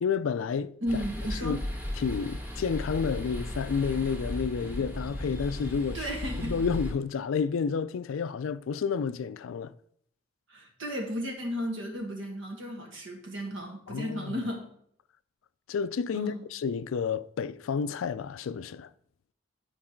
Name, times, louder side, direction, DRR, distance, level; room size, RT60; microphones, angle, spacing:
voice 1, 0.0-1.0 1.4-1.6 2.0-6.1 6.4-9.7 13.9-14.3 15.7-18.9, left 6 dB, 75° left, 0.4 m, -30 dB
voice 2, 0.8-1.6 5.9-6.6 10.5-14.7 16.1-16.5, equal, 65° right, 1.8 m, -34 dB
sound 1, 0.9-6.9, left 1 dB, 10° right, 1.4 m, -36 dB
11.0 x 4.7 x 4.4 m
head